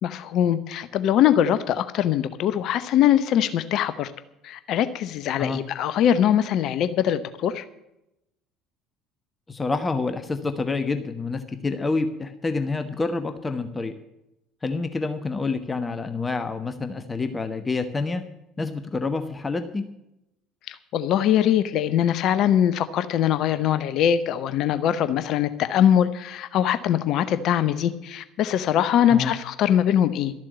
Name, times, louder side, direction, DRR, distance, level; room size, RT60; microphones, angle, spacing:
voice 1, 0.0-4.1 4.4-7.6 20.7-30.3, left 10 dB, 50° left, 13 dB, 0.8 m, -22 dB
voice 2, 9.5-13.9 14.6-18.2 18.6-19.8 29.1-29.3, left 3 dB, 20° left, 9 dB, 1.1 m, -27 dB
13.0 x 7.5 x 9.6 m, 0.86 s
figure-of-eight pair, 60°, 0 cm